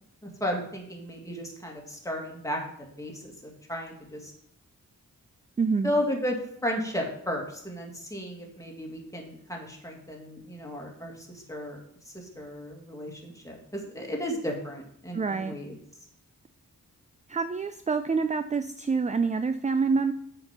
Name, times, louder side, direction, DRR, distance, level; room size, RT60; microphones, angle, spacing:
voice 1, 0.2-4.3 5.8-11.8 12.1-15.7, equal, 10° left, -1 dB, 2.1 m, -34 dB
voice 2, 5.6-5.9 15.1-15.5 17.3-20.1, right 4 dB, 20° right, 10 dB, 0.4 m, -26 dB
7.0 x 5.2 x 5.8 m, 0.68 s
wide cardioid pair, 70°, 33 cm